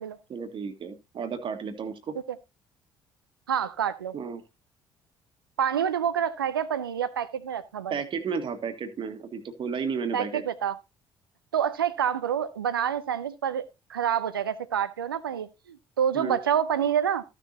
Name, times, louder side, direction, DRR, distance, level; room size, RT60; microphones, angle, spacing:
voice 1, 0.3-2.1 4.1-4.4 7.9-10.4 16.1-16.4, right 6 dB, 45° right, 1.6 m, -33 dB
voice 2, 3.5-4.2 5.6-7.9 10.1-10.7 11.5-17.2, right 8 dB, 85° right, 0.5 m, -27 dB
14.0 x 6.6 x 2.8 m
figure-of-eight pair, 50°, 12 cm